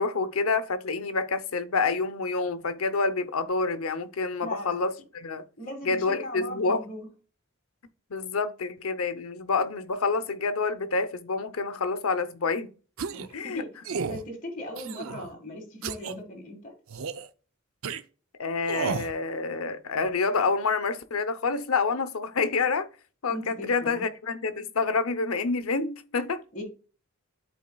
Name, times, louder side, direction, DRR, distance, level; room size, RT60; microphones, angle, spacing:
voice 1, 0.0-5.4 5.8-6.8 8.1-12.7 13.3-13.6 18.4-22.9 23.2-26.4, left 4 dB, 85° left, 0.7 m, -28 dB
voice 2, 4.4-4.8 5.6-7.1 13.1-13.7 14.1-16.7 23.3-24.1 26.5-26.6, left 1 dB, 40° left, 1.8 m, -39 dB
sound 1, 13.0-13.3 13.8-14.2 14.8-15.3 15.8-16.1 16.9-17.3 17.8-18.0 18.7-19.1, right 5 dB, 75° right, 0.6 m, -32 dB
11.5 x 4.3 x 2.3 m
head